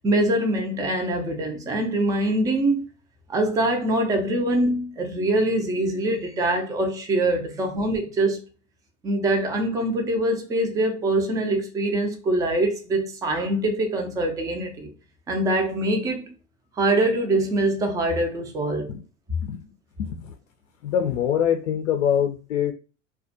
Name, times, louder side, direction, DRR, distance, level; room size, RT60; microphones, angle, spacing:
voice 1, 0.0-2.8 3.3-8.4 9.0-14.9 15.3-16.3 16.8-18.9, right 1 dB, 10° right, 0.3 m, -24 dB
voice 2, 20.0-20.3 20.8-22.7, left 9 dB, 80° left, 0.5 m, -24 dB
2.3 x 2.1 x 2.5 m
hypercardioid pair, 90°, 38 cm